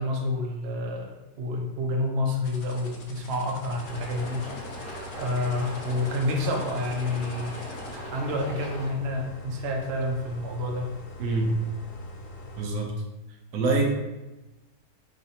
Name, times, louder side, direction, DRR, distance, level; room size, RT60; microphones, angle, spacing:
voice 1, 0.0-4.5 5.2-7.5 7.9-10.9, left 1 dB, 60° right, 1 dB, 0.7 m, -29 dB
sound 1, 2.4-8.0, left 4 dB, 65° left, 1.0 m, -48 dB
sound 2, 3.6-12.7, left 1 dB, 80° left, 1.3 m, -43 dB
sound 3, 3.8-8.9, equal, 35° left, 1.4 m, -39 dB
voice 2, 11.2-11.6 12.6-12.9 13.5-13.8, right 3 dB, 90° right, 0 dB, 1.4 m, -25 dB
4.2 x 3.8 x 2.8 m, 1.1 s
omnidirectional pair, 1.8 m